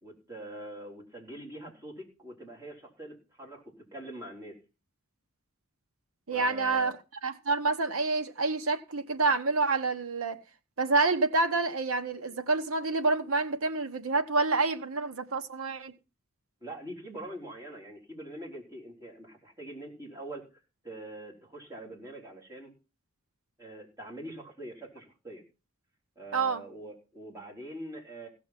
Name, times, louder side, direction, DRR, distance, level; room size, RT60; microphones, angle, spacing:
voice 1, 0.0-4.6 6.3-7.0 16.6-20.4 20.8-22.7 23.6-25.4 26.2-28.3, right 1 dB, 15° right, 3.9 m, -44 dB
voice 2, 6.3-6.9 7.2-10.4 10.8-15.9 26.3-26.6, right 3 dB, 85° right, 1.2 m, -28 dB
16.5 x 6.3 x 5.9 m
head